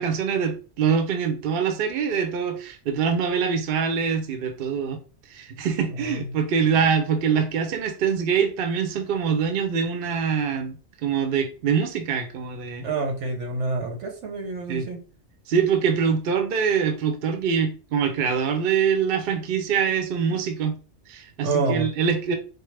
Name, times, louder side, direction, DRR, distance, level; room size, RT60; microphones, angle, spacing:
voice 1, 0.0-5.0 5.3-10.8 11.0-12.8 14.7-14.9 15.5-20.8 21.1-22.3, right 6 dB, 60° right, 7 dB, 0.8 m, -24 dB
voice 2, 12.8-15.0 20.3-20.4 21.4-21.9, right 3 dB, 85° right, 4 dB, 1.2 m, -28 dB
4.4 x 2.0 x 3.1 m, 0.36 s
omnidirectional pair, 1.2 m